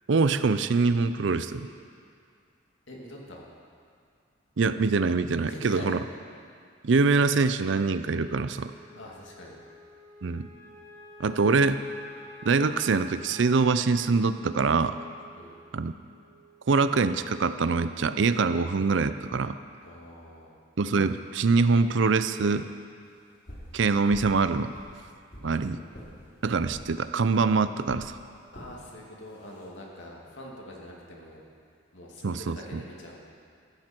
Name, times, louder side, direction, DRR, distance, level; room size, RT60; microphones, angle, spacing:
voice 1, 0.1-1.7 4.6-6.0 6.8-8.7 10.2-10.5 11.2-11.8 12.4-15.0 15.7-15.9 16.7-19.6 20.8-22.6 23.7-24.7 25.4-25.8 26.4-28.2 32.2-32.8, right 4 dB, 65° right, 12 dB, 0.5 m, -24 dB
voice 2, 2.9-3.5 5.4-6.0 9.0-9.6 15.3-15.6 19.8-20.6 25.4-26.4 28.5-31.4 31.9-33.2, left 1 dB, 70° left, -2 dB, 2.4 m, -44 dB
Wind instrument woodwind instrument, 8.2-16.7, left 2 dB, 40° right, 2.6 m, -50 dB
sound 1, 23.5-23.7 24.1-24.4 24.7-25.5 25.9-26.1 26.6-26.8 27.2-27.4 27.9-28.1 28.5-28.7 29.3-29.6, equal, 50° left, 3.2 m, -44 dB
14.0 x 14.0 x 4.5 m, 2.3 s
head